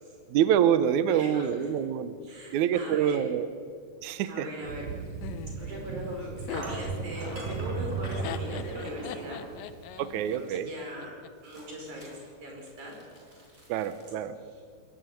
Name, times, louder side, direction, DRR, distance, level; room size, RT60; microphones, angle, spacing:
voice 1, 0.3-2.2 2.5-3.5 4.0-4.5 10.0-10.7 13.7-14.3, right 9 dB, 85° right, 12 dB, 1.7 m, -26 dB
voice 2, 1.1-1.7 2.2-3.2 4.2-4.9 5.6-9.4 10.2-11.1 11.4-12.9 14.4-14.6, equal, 50° right, 0 dB, 6.1 m, -40 dB
Thunder, 4.6-10.3, right 5 dB, 65° right, 2.2 m, -37 dB
Laughter, 5.2-11.3, left 11 dB, 75° left, 2.2 m, -42 dB
sound 1, 5.5-5.6 6.5-9.6 10.3-10.8 11.4-14.1, right 1 dB, 20° right, 5.5 m, -44 dB
22.0 x 12.5 x 9.3 m, 2.1 s
omnidirectional pair, 4.6 m